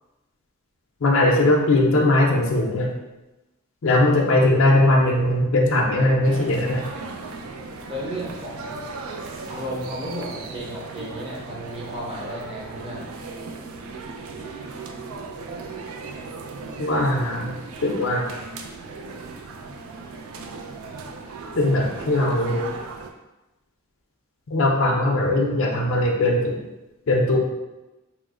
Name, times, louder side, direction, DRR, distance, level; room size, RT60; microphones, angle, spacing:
voice 1, 1.0-2.9 3.8-6.8 16.8-18.3 21.6-22.7 24.5-26.5 27.1-27.4, left 1 dB, 60° left, -1 dB, 0.5 m, -20 dB
sound 1, 6.2-23.1, right 3 dB, 65° right, 0.3 m, -37 dB
voice 2, 7.9-8.8 9.5-13.1, equal, 25° right, -5 dB, 0.7 m, -34 dB
3.0 x 2.0 x 3.6 m, 1.0 s
head